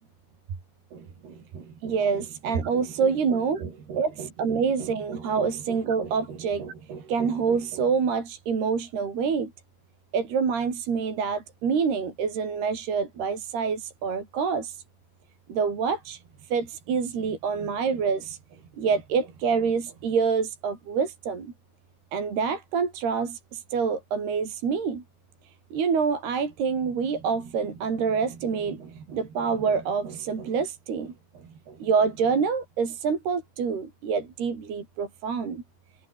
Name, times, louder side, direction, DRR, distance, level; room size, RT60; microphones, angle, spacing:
voice 1, 0.9-9.5 10.1-14.8 15.5-16.2 16.5-18.4 18.8-21.5 22.1-25.0 25.7-35.6, right 5 dB, 60° right, 6.5 m, -27 dB
omnidirectional pair, 5.1 m